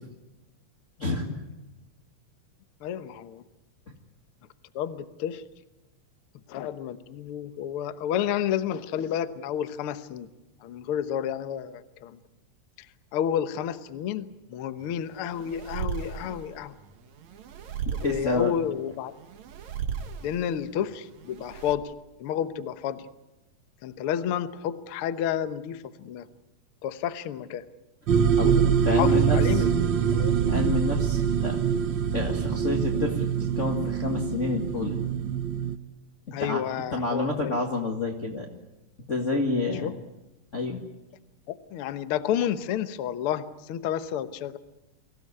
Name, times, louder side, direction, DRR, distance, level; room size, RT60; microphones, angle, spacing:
voice 1, 1.0-1.4 18.0-18.5 28.4-28.5 28.8-29.7 30.5-31.6 32.1-35.0 36.4-36.6 36.9-38.5 39.1-39.9 40.5-40.8, left 3 dB, 30° left, 0 dB, 1.7 m, -28 dB
voice 2, 2.8-3.4 4.7-5.4 6.5-10.3 10.6-12.2 12.8-12.9 13.1-16.8 17.9-19.1 20.2-21.9 22.2-23.1 23.8-26.3 26.8-27.6 28.4-28.6 28.9-30.4 36.3-37.6 39.3-39.4 39.8-39.9 41.5-44.6, left 9 dB, 65° left, 12 dB, 1.5 m, -31 dB
sound 1, 14.8-21.8, right 7 dB, 65° right, 2.7 m, -37 dB
sound 2, 28.1-35.7, right 7 dB, 85° right, 1.0 m, -24 dB
24.5 x 16.0 x 9.6 m, 1.0 s
omnidirectional pair, 3.6 m